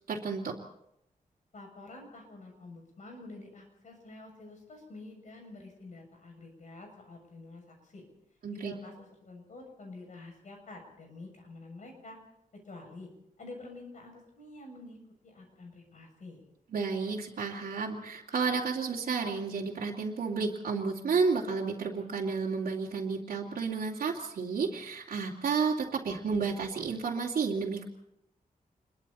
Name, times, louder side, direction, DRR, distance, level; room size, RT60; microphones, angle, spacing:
voice 1, 0.1-0.6 8.4-8.7 16.7-27.8, right 5 dB, 80° right, -5 dB, 2.7 m, -31 dB
voice 2, 1.5-8.0 8.5-12.2 12.7-13.1 13.4-15.0 15.2-16.4, left 2 dB, 55° left, 2 dB, 7.1 m, -48 dB
27.5 x 22.5 x 4.3 m, 0.79 s
wide cardioid pair, 175°, 15 cm